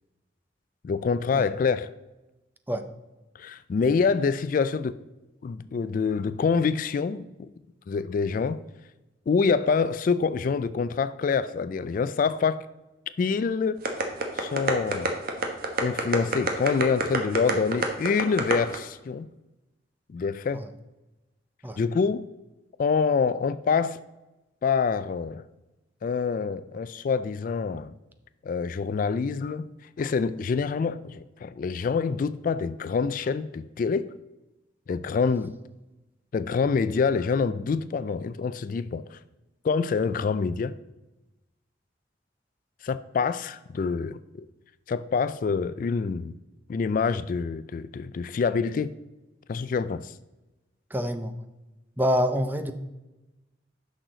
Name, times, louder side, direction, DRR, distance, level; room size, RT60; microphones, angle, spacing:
voice 1, 0.8-1.9 3.4-5.0 5.4-7.5 7.9-8.6 9.3-12.6 13.2-13.8 14.3-15.1 15.8-19.3 20.1-20.6 21.8-22.2 22.8-24.0 24.6-25.4 26.0-27.9 28.4-29.7 30.0-34.1 34.9-35.5 36.3-39.2 39.6-40.7 42.8-44.5 44.9-46.3 46.7-48.9 49.5-50.1, left 5 dB, 50° left, 0.3 m, -26 dB
sound 1, 13.8-18.8, right 3 dB, 55° right, 1.2 m, -26 dB
voice 2, 50.9-51.3 52.0-52.7, equal, 10° right, 0.6 m, -26 dB
10.5 x 6.3 x 3.9 m
head